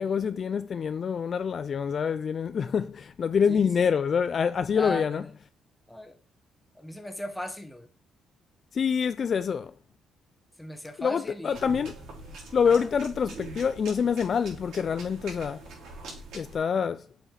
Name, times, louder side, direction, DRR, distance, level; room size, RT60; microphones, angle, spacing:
voice 1, 0.0-5.2 8.7-9.7 11.0-11.9 12.5-15.6 16.3-17.1, left 6 dB, 50° left, 0.4 m, -26 dB
voice 2, 3.5-3.9 4.7-5.3 5.9-6.2 6.7-7.9 10.6-11.6 12.6-12.9, left 1 dB, 5° left, 1.6 m, -37 dB
sound 1, 11.5-16.6, right 2 dB, 80° right, 4.1 m, -43 dB
7.8 x 5.1 x 4.1 m
cardioid pair, 90°, 0 cm